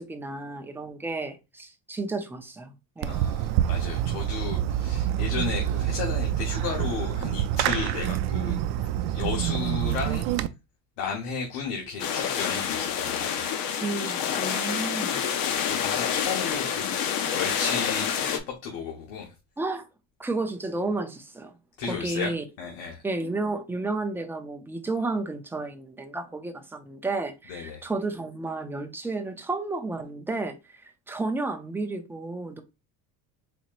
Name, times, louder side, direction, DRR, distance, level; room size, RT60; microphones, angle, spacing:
voice 1, 0.0-3.1 13.8-15.2 19.6-19.9 20.2-21.6 21.9-22.4 23.0-30.6 31.1-32.6, right 3 dB, 5° right, 0.5 m, -32 dB
Fireworks, 3.0-10.5, right 11 dB, 70° right, 0.5 m, -27 dB
voice 2, 3.1-8.6 9.1-10.3 11.0-13.5 15.5-16.9 17.3-19.3 21.8-23.0 27.5-27.8, left 6 dB, 80° left, 1.1 m, -34 dB
sound 1, 12.0-18.4, left 8 dB, 55° left, 0.8 m, -28 dB
4.2 x 2.9 x 2.5 m
cardioid pair, 120°, 41 cm